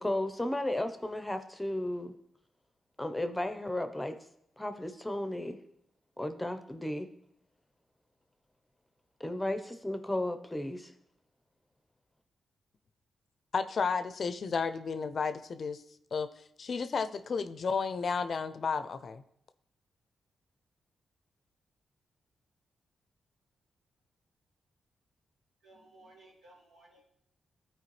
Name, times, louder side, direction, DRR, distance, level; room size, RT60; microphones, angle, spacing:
voice 1, 0.0-2.1 3.0-4.1 4.6-5.6 6.2-7.1 9.2-10.9, left 1 dB, 10° left, 8 dB, 0.8 m, -34 dB
voice 2, 13.5-15.8 16.1-19.2, left 5 dB, 60° left, 12 dB, 0.5 m, -32 dB
voice 3, 25.6-27.1, right 2 dB, 80° right, -3 dB, 2.5 m, -58 dB
13.0 x 4.6 x 3.2 m, 0.74 s
cardioid pair, 60°, 0 cm